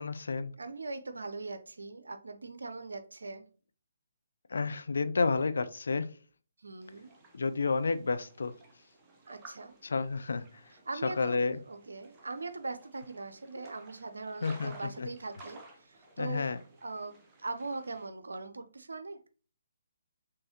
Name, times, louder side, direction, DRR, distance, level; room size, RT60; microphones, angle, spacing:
voice 1, 0.0-0.5 4.5-6.1 7.3-8.5 9.8-10.5 11.0-11.6 14.4-15.1 16.2-16.6, left 4 dB, 60° left, 11 dB, 0.4 m, -30 dB
voice 2, 0.6-3.4 6.6-7.1 9.3-9.8 10.9-16.5 16.8-19.2, right 3 dB, 65° right, 10 dB, 0.6 m, -41 dB
sound 1, 6.8-18.1, right 2 dB, 15° right, 1.0 m, -56 dB
5.4 x 3.3 x 2.8 m, 0.39 s
figure-of-eight pair, 135°, 0 cm